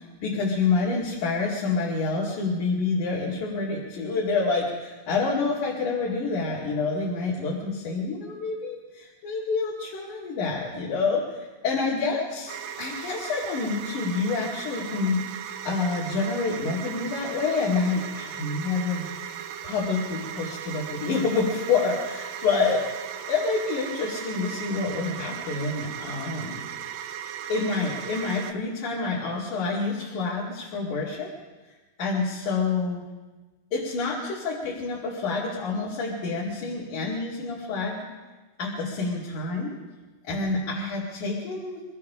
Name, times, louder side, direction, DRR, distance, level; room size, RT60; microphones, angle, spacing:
voice 1, 0.0-15.4 15.6-19.1 19.6-22.8 23.3-26.7 27.5-31.3 32.0-33.0 33.7-38.0 38.6-39.8 40.3-41.8, left 4 dB, 55° left, -6 dB, 3.6 m, -28 dB
sound 1, 12.5-28.5, right 9 dB, 80° right, 2.1 m, -37 dB
27.5 x 14.0 x 3.7 m, 1.2 s
omnidirectional pair, 4.7 m